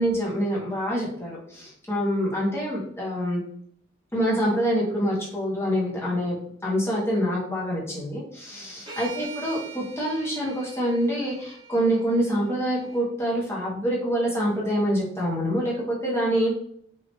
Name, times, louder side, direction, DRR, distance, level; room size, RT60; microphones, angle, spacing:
voice 1, 0.0-3.4 4.1-16.5, equal, 15° left, -5 dB, 0.8 m, -26 dB
sound 1, 8.9-13.0, right 6 dB, 20° right, 0.6 m, -44 dB
3.0 x 2.3 x 2.9 m, 0.66 s
head